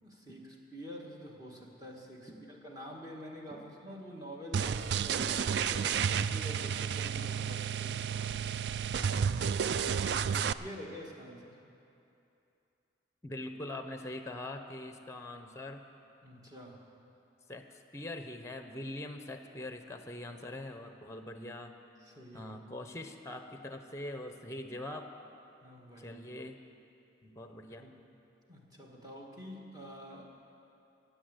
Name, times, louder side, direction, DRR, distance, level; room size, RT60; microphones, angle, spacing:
voice 1, 0.0-8.1 9.8-11.6 16.2-16.8 22.0-22.5 25.6-26.2 27.8-27.9 28.5-30.3, equal, 20° right, -1 dB, 1.7 m, -47 dB
sound 1, 4.5-10.5, right 7 dB, 60° right, 0.3 m, -31 dB
voice 2, 13.2-15.8 17.5-21.7 22.3-25.1 26.0-26.6 27.2-27.9, left 1 dB, 15° left, 7 dB, 0.8 m, -43 dB
17.0 x 8.2 x 7.9 m, 2.8 s
head